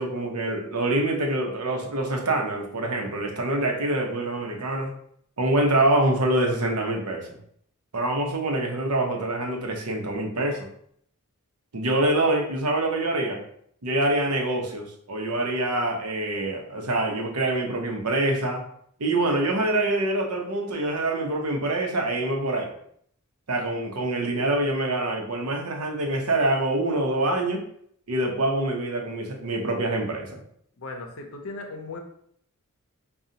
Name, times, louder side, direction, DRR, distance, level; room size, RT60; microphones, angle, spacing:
voice 1, 0.0-4.9 5.4-7.3 7.9-10.7 11.7-13.4 13.8-18.6 19.0-22.7 23.5-27.6 28.1-30.4, right 1 dB, 80° right, 1 dB, 0.8 m, -25 dB
voice 2, 30.8-32.0, left 3 dB, 65° left, 4 dB, 0.6 m, -37 dB
4.9 x 2.4 x 2.7 m, 0.66 s
head